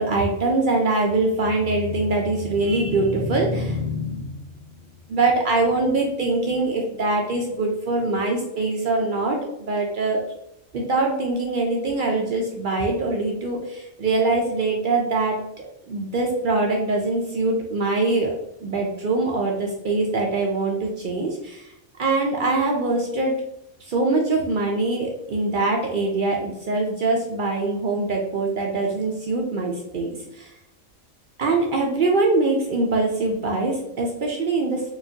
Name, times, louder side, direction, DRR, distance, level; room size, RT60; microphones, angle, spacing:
voice 1, 0.0-4.4 5.1-10.2 10.7-18.3 18.6-21.7 22.0-23.3 23.9-30.5 31.4-35.0, right 2 dB, 65° right, 0 dB, 0.5 m, -23 dB
4.6 x 2.4 x 2.7 m, 0.81 s
omnidirectional pair, 1.4 m